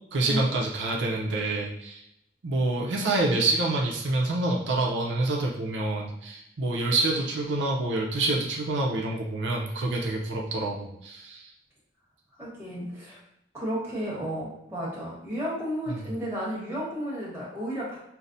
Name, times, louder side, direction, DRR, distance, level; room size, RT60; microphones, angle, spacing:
voice 1, 0.1-2.0 2.4-11.5 15.9-16.1, right 2 dB, 85° right, -1 dB, 0.5 m, -27 dB
voice 2, 12.4-13.2 13.5-18.0, equal, 15° right, -7 dB, 1.2 m, -33 dB
5.6 x 2.0 x 2.6 m, 0.80 s
head